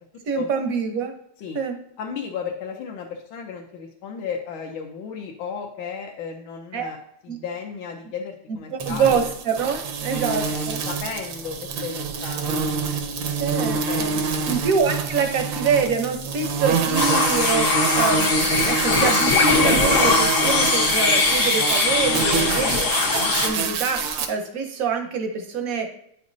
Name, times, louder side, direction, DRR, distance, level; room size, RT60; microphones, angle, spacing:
voice 1, 0.2-1.1 1.5-1.8 6.7-6.9 7.3-7.4 8.5-10.8 13.4-14.2 14.5-22.8 23.1-25.9, right 5 dB, 55° right, 5 dB, 1.0 m, -25 dB
voice 2, 2.0-7.0 7.2-9.2 10.1-12.6 13.9-14.3 22.3-22.5, left 6 dB, 80° left, 0 dB, 1.6 m, -34 dB
sound 1, 8.8-24.3, right 5 dB, 75° right, 1.5 m, -26 dB
sound 2, 17.0-23.5, left 4 dB, 45° left, 1.2 m, -21 dB
9.4 x 5.2 x 2.6 m, 0.73 s
omnidirectional pair, 2.2 m